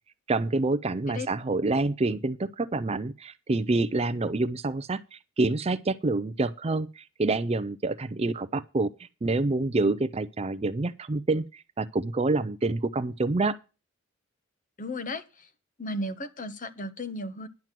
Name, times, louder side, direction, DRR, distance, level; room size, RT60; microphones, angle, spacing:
voice 1, 0.3-13.6, right 2 dB, 30° right, 0.4 m, -27 dB
voice 2, 14.8-15.5 15.8-17.5, left 1 dB, 35° left, 0.9 m, -35 dB
10.5 x 6.0 x 7.5 m
head